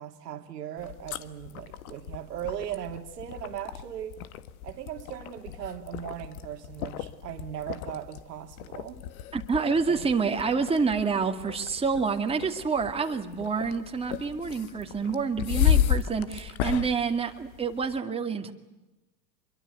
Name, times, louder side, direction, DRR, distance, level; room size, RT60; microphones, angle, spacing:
voice 1, 0.0-4.2 4.6-9.1 9.9-10.1, right 10 dB, 75° right, 2.4 m, -38 dB
sound 1, 0.8-18.0, left 10 dB, 60° left, 1.7 m, -33 dB
voice 2, 9.3-18.5, right 5 dB, 10° right, 2.3 m, -28 dB
25.5 x 23.0 x 8.1 m
hypercardioid pair, 105°, 48 cm